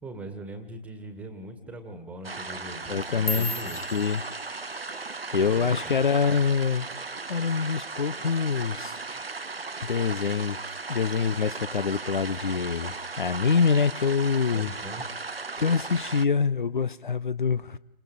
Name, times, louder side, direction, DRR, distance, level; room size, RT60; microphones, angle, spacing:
voice 1, 0.0-3.8 5.4-6.0 9.1-9.2 14.5-15.1, right 1 dB, 5° right, 9 dB, 1.9 m, -41 dB
sound 1, 2.2-16.3, right 4 dB, 80° right, 1.0 m, -37 dB
sound 2, 2.8-7.2 7.5-7.9 8.3-8.7 9.1-9.3 9.9-10.3 10.7-11.6 11.9-12.4 13.1-13.2, left 2 dB, 80° left, 2.0 m, -39 dB
voice 2, 2.9-3.5 3.9-4.2 5.3-6.9 7.3-9.0 9.8-10.6 10.9-14.7 15.6-17.8, left 5 dB, 55° left, 18 dB, 0.9 m, -25 dB
30.0 x 27.0 x 5.3 m, 0.76 s
figure-of-eight pair, 135°, 29 cm